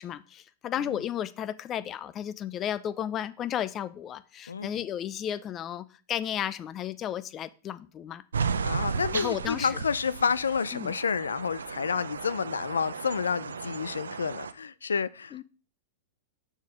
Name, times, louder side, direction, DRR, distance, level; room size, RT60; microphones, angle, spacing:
voice 1, 0.0-8.2 9.1-9.8 10.7-11.0 15.3-15.4, left 10 dB, 30° left, 0.6 m, -33 dB
sound 1, 8.3-14.5, right 5 dB, 90° right, 0.6 m, -34 dB
voice 2, 8.6-15.4, left 6 dB, 90° left, 0.5 m, -29 dB
6.6 x 4.9 x 5.2 m
hypercardioid pair, 110°, 0 cm